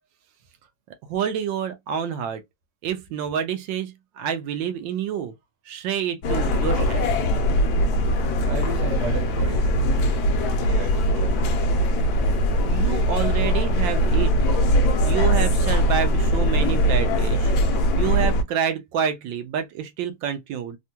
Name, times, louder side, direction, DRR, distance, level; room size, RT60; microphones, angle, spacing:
voice 1, 1.1-2.4 2.8-5.3 5.7-7.1 12.7-14.5 15.0-17.5 18.0-20.8, right 8 dB, 85° right, 1.3 m, -28 dB
Subway Platform Noise with Passing Train, 6.2-18.4, equal, 65° left, 1.1 m, -21 dB
voice 2, 8.5-11.4, right 5 dB, 50° right, 1.1 m, -34 dB
3.4 x 2.2 x 2.7 m
omnidirectional pair, 2.0 m